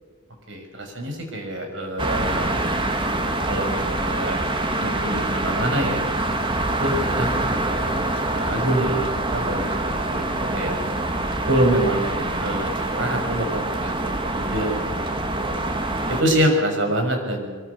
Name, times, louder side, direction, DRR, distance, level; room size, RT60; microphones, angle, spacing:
voice 1, 0.5-2.5 3.5-4.4 4.8-6.0 6.8-10.8 11.5-15.1 15.4-15.6 16.1-17.5, right 1 dB, 65° right, 3 dB, 6.2 m, -26 dB
sound 1, 2.0-16.2, right 2 dB, 25° right, 2.1 m, -25 dB
24.0 x 24.0 x 6.9 m, 1.5 s
head